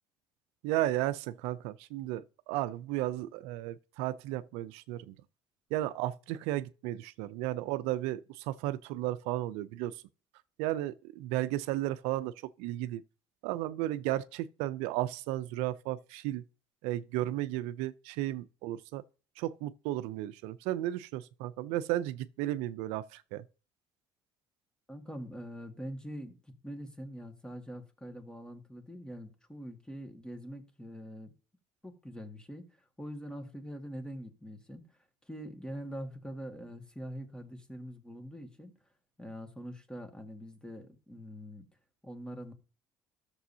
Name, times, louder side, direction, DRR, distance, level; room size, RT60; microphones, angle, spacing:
voice 1, 0.6-5.1 5.7-10.0 10.6-12.3 12.6-13.0 13.4-16.4 16.8-19.0 19.4-23.4, right 15 dB, 85° right, 0.4 m, -34 dB
voice 2, 24.9-31.3 31.8-35.0 35.3-38.7 39.2-41.7 42.0-42.5, equal, 10° left, 1.9 m, -44 dB
12.5 x 6.9 x 2.8 m
supercardioid pair, 80°, 10 cm